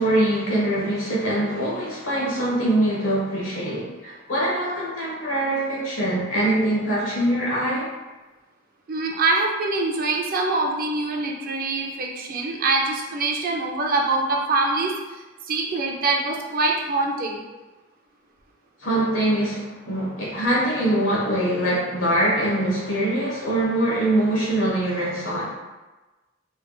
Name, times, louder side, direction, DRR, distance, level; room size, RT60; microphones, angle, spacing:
voice 1, 0.0-7.9 18.8-25.5, right 1 dB, 85° left, -5 dB, 1.2 m, -23 dB
voice 2, 8.9-14.9 15.5-17.4, right 3 dB, 45° right, 0 dB, 0.5 m, -24 dB
3.4 x 3.2 x 2.3 m, 1.2 s
head